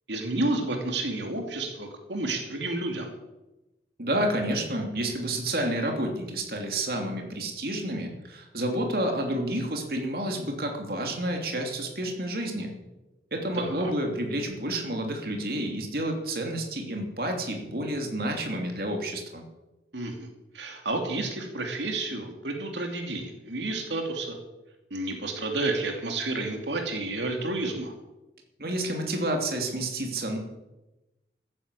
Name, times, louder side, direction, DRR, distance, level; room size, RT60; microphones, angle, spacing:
voice 1, 0.1-3.1 13.5-13.9 19.9-20.3 20.5-24.4 24.9-27.9, right 2 dB, 90° right, 3 dB, 2.7 m, -30 dB
voice 2, 4.0-12.7 13.3-19.4 28.6-30.4, right 1 dB, 55° right, 2 dB, 2.9 m, -30 dB
14.0 x 10.5 x 8.3 m, 1.0 s
head